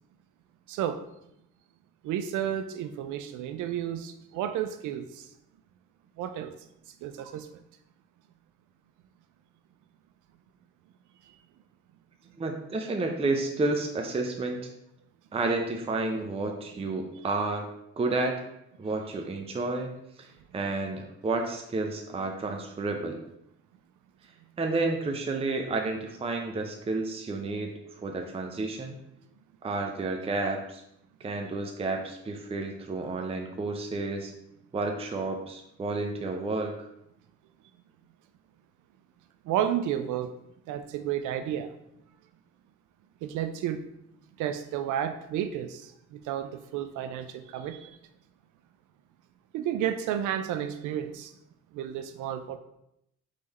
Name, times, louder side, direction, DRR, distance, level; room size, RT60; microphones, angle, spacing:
voice 1, 0.7-1.0 2.0-5.3 6.2-6.5 7.0-7.6 11.3-11.4 18.8-18.9 39.4-40.3 40.7-41.7 43.2-43.8 44.4-48.0 49.5-51.3 51.7-52.6, right 10 dB, 85° right, 9 dB, 0.4 m, -32 dB
voice 2, 12.4-14.7 15.3-17.7 18.0-18.4 18.8-19.9 20.2-23.2 24.6-27.7 28.0-29.0 29.6-30.8 31.2-34.3 34.7-36.9, right 3 dB, 20° right, 3 dB, 0.5 m, -31 dB
3.8 x 3.2 x 4.0 m, 0.78 s
cardioid pair, 90°, 30 cm